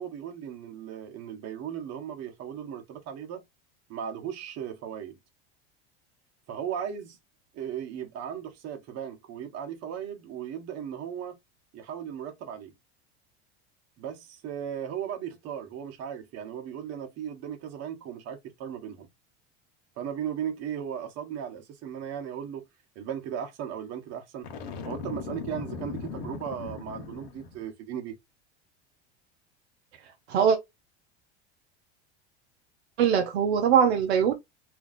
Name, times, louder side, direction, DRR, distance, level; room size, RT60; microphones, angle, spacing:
voice 1, 0.0-3.4 3.9-5.2 6.5-7.2 7.5-11.4 11.7-12.7 14.0-19.1 20.0-22.7 22.9-24.5 24.9-28.2, right 9 dB, 50° right, 1.0 m, -36 dB
Boom, 24.4-27.6, left 5 dB, 75° left, 0.9 m, -38 dB
voice 2, 33.0-34.3, right 7 dB, 85° right, 0.6 m, -21 dB
2.6 x 2.2 x 3.8 m
hypercardioid pair, 90°, 32 cm